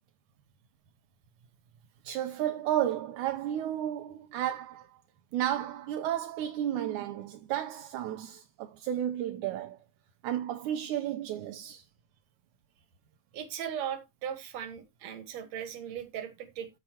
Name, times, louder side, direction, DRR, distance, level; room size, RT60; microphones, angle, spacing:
voice 1, 2.0-4.9 5.3-9.8 10.2-11.8, right 11 dB, 75° right, 1.9 m, -32 dB
voice 2, 13.3-16.7, right 9 dB, 60° right, 2.3 m, -38 dB
13.5 x 5.9 x 2.9 m
omnidirectional pair, 3.9 m